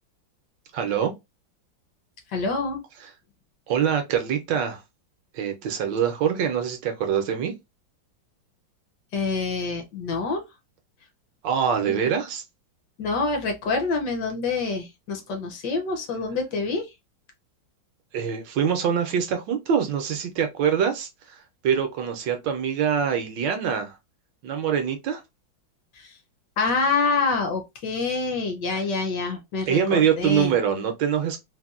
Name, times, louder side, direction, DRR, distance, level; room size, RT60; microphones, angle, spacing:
voice 1, 0.7-1.1 3.7-4.8 5.3-7.5 11.4-12.4 18.1-24.0 24.4-25.2 29.7-31.4, right 8 dB, 75° right, 1.2 m, -24 dB
voice 2, 2.3-2.8 9.1-10.4 11.9-12.1 13.0-16.9 25.9-26.2 26.6-30.5, left 4 dB, 65° left, 1.2 m, -26 dB
4.0 x 2.1 x 2.3 m
omnidirectional pair, 2.2 m